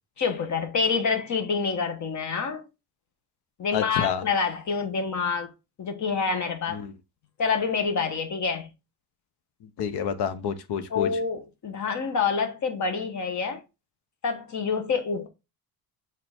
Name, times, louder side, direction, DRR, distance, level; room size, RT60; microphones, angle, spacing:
voice 1, 0.2-2.6 3.6-5.5 5.8-6.8 7.4-8.7 10.9-13.6 14.2-15.3, left 5 dB, 45° left, 1.3 m, -27 dB
voice 2, 3.7-4.2 6.7-6.9 9.6-11.1, left 8 dB, 85° left, 1.0 m, -29 dB
8.0 x 3.8 x 3.6 m
cardioid pair, 145°, 39 cm